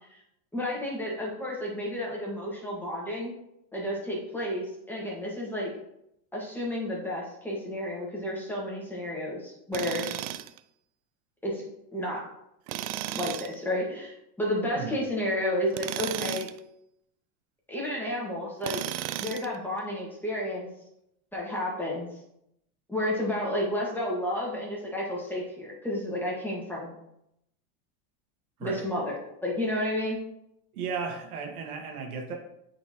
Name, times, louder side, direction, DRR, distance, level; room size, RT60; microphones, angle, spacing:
voice 1, 0.5-3.3 3.7-5.7 6.3-10.1 11.4-11.6 11.9-12.2 13.1-16.5 17.7-18.8 19.2-20.7 21.3-22.1 22.9-26.9 28.6-29.1 29.4-30.2, left 1 dB, 5° left, -4 dB, 1.8 m, -31 dB
Tools, 9.7-10.6 12.7-13.5 15.7-16.6 18.6-19.6, right 13 dB, 70° right, 0.5 m, -34 dB
voice 2, 30.7-32.4, right 5 dB, 90° right, 3 dB, 1.6 m, -34 dB
8.4 x 4.4 x 3.0 m, 0.81 s
supercardioid pair, 130°, 43 cm